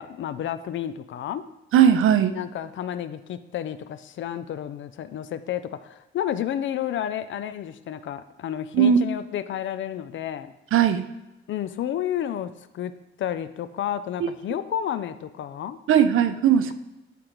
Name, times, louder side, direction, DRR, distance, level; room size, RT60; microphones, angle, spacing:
voice 1, 0.0-1.4 2.3-10.5 11.5-12.9 13.2-15.8, left 10 dB, 65° left, 13 dB, 0.5 m, -31 dB
voice 2, 1.7-2.3 8.7-9.0 10.7-11.1 15.9-16.7, right 9 dB, 80° right, 11 dB, 0.6 m, -18 dB
11.5 x 5.1 x 3.0 m, 0.97 s
wide cardioid pair, 160°, 21 cm